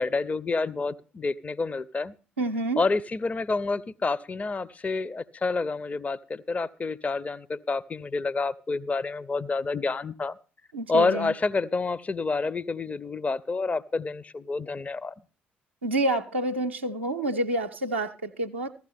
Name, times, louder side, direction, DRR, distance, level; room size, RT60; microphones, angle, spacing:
voice 1, 0.0-2.1 2.8-10.3 10.9-15.1, left 3 dB, 25° left, 0.5 m, -28 dB
voice 2, 2.4-2.8 10.7-11.3 15.8-18.7, right 2 dB, 85° right, 0.5 m, -28 dB
15.0 x 12.5 x 3.4 m
figure-of-eight pair, 45°, 6 cm